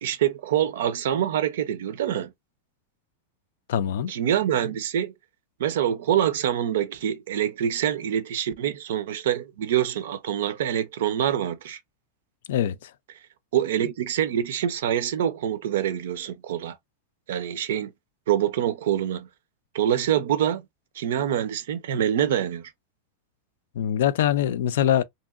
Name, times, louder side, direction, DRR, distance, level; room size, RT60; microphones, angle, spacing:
voice 1, 0.0-2.3 4.1-5.1 5.6-11.8 13.5-16.8 17.3-17.9 18.3-19.3 19.7-20.6 20.9-22.7, right 10 dB, 75° right, 0.5 m, -25 dB
voice 2, 3.7-4.1 12.5-12.9 23.8-25.0, left 10 dB, 75° left, 0.3 m, -23 dB
2.9 x 2.7 x 2.4 m
supercardioid pair, 160°, 0 cm